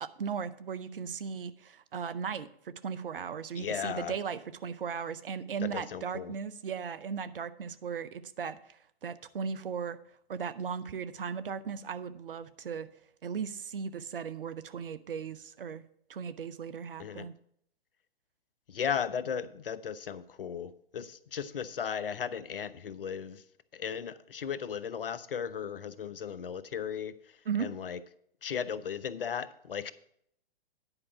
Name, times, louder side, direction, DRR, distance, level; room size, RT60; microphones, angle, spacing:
voice 1, 0.0-8.6 9.0-10.0 10.3-12.9 13.2-15.8 16.1-17.3 27.5-27.7, right 6 dB, 65° right, 12 dB, 0.7 m, -37 dB
voice 2, 3.5-4.1 5.6-6.3 17.0-17.3 18.7-23.4 23.7-27.1 27.6-28.0 28.4-29.9, left 7 dB, 65° left, 16 dB, 0.7 m, -36 dB
9.9 x 4.8 x 7.0 m, 0.68 s
figure-of-eight pair, 120°, 30 cm